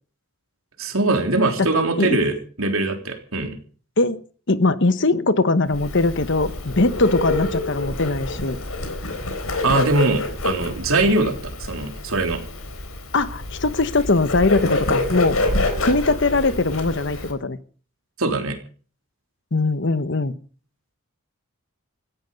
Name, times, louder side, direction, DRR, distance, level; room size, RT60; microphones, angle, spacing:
voice 1, 0.8-3.6 9.6-12.4 18.2-18.6, right 2 dB, 75° right, 5 dB, 3.6 m, -22 dB
voice 2, 4.5-8.6 13.1-15.4 15.8-17.6 19.5-20.3, left 3 dB, 55° left, 13 dB, 1.1 m, -20 dB
Bird, 5.7-17.3, left 2 dB, 80° left, 4.1 m, -27 dB
17.5 x 15.5 x 5.3 m, 0.42 s
head